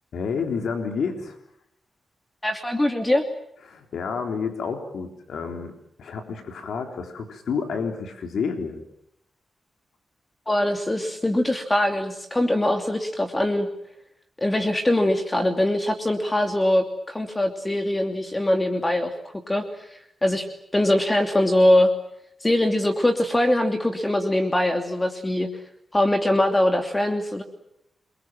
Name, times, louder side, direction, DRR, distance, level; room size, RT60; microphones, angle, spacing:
voice 1, 0.1-1.4 3.7-5.7 6.0-8.8, left 5 dB, 85° left, 5 dB, 3.7 m, -29 dB
voice 2, 2.4-3.2 10.5-13.7 14.4-19.1 19.5-20.5 20.7-21.9 22.4-25.6 25.9-27.4, left 1 dB, 20° left, 5 dB, 2.8 m, -22 dB
29.0 x 23.0 x 7.7 m, 0.78 s
cardioid pair, 75°, 0 cm